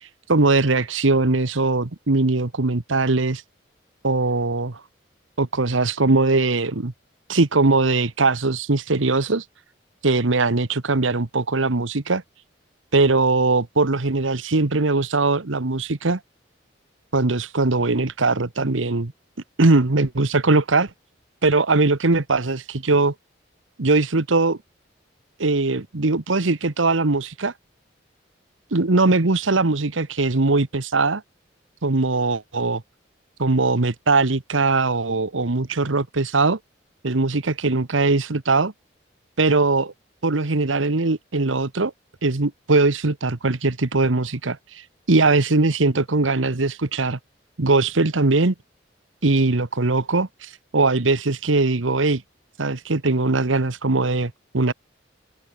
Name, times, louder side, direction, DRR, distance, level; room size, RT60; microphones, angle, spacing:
voice 1, 0.3-3.4 4.0-4.8 5.4-6.9 7.3-9.4 10.0-12.2 12.9-16.2 17.1-19.1 19.6-20.9 21.4-23.1 23.8-24.6 25.4-27.5 28.7-31.2 31.8-32.8 33.4-36.6 37.0-38.7 39.4-39.9 40.2-41.9 42.2-47.2 47.6-48.5 49.2-52.2 52.6-54.7, right 3 dB, 90° right, 1.3 m, -20 dB
open air
head